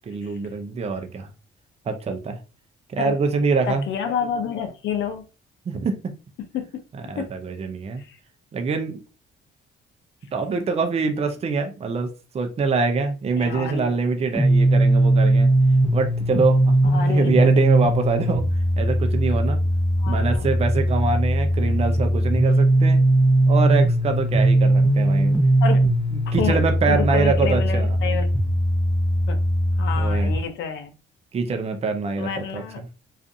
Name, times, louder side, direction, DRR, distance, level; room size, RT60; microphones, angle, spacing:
voice 1, 0.1-1.3 1.9-2.4 2.9-3.8 5.7-6.1 7.1-8.0 8.5-9.0 10.3-12.1 12.3-15.5 15.9-18.4 18.8-19.6 20.1-23.0 23.5-25.4 26.3-28.0 30.0-30.3 31.3-32.8, right 4 dB, 30° right, 0.4 m, -24 dB
voice 2, 3.7-5.2 6.5-7.3 8.0-8.2 13.4-13.9 16.8-17.5 20.0-20.5 25.6-25.8 26.3-26.6 26.9-28.3 29.3-29.4 29.8-30.9 32.2-32.8, left 7 dB, 70° left, 0.5 m, -29 dB
sound 1, 14.3-30.4, right 1 dB, 5° left, 0.7 m, -19 dB
2.5 x 2.4 x 2.5 m
cardioid pair, 90°, 20 cm